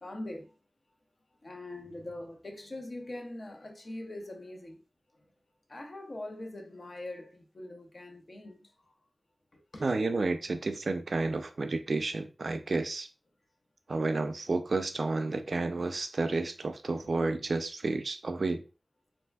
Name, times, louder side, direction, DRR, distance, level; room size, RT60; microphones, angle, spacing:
voice 1, 0.0-0.6 1.4-4.8 5.7-8.7 9.5-9.9, left 1 dB, 50° left, 0.6 m, -42 dB
voice 2, 9.8-13.1 13.9-18.6, right 3 dB, 65° right, 0.3 m, -31 dB
3.4 x 2.5 x 2.2 m
wide cardioid pair, 90°, 0 cm